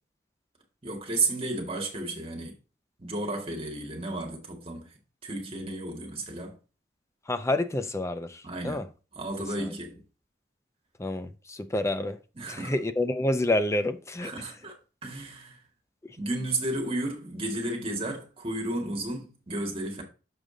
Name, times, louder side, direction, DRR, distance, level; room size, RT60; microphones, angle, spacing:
voice 1, 0.8-2.6 3.0-4.9 5.2-6.6 8.4-8.9 9.1-10.0 12.3-12.7 14.2-14.7 15.0-15.6 16.2-20.0, right 2 dB, 35° right, 1.8 m, -33 dB
voice 2, 7.3-8.8 9.6-9.7 11.0-12.2 12.5-14.3, left 1 dB, 15° left, 0.5 m, -28 dB
6.6 x 5.1 x 3.8 m
head